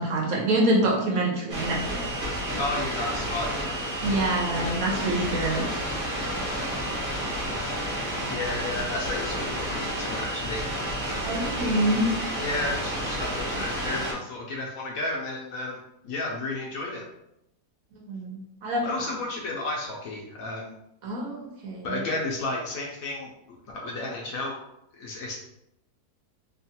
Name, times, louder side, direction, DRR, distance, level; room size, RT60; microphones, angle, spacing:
voice 1, 0.0-2.1 4.0-5.7 11.2-12.1 18.1-19.1 21.0-22.0, right 1 dB, 65° right, -2 dB, 1.0 m, -26 dB
sound 1, 1.5-14.1, equal, 30° right, 0.7 m, -30 dB
voice 2, 2.5-3.6 8.3-10.7 12.4-17.1 18.8-20.7 21.8-24.6 24.9-25.3, left 2 dB, 70° left, -1 dB, 0.9 m, -32 dB
3.0 x 2.3 x 2.8 m, 0.81 s
omnidirectional pair, 1.7 m